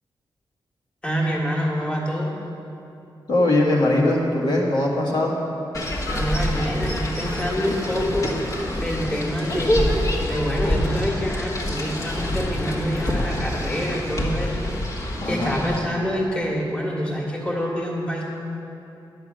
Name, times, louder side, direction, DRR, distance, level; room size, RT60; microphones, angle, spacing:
voice 1, 1.0-2.3 6.1-8.3 8.8-10.0 10.3-18.3, equal, 10° left, -3 dB, 1.8 m, -26 dB
voice 2, 3.3-5.4 15.2-15.6, left 1 dB, 60° left, -4 dB, 1.9 m, -21 dB
sound 1, 5.7-15.8, left 1 dB, 40° left, 1.5 m, -26 dB
9.9 x 5.9 x 7.7 m, 2.9 s
wide cardioid pair, 95°, 9 cm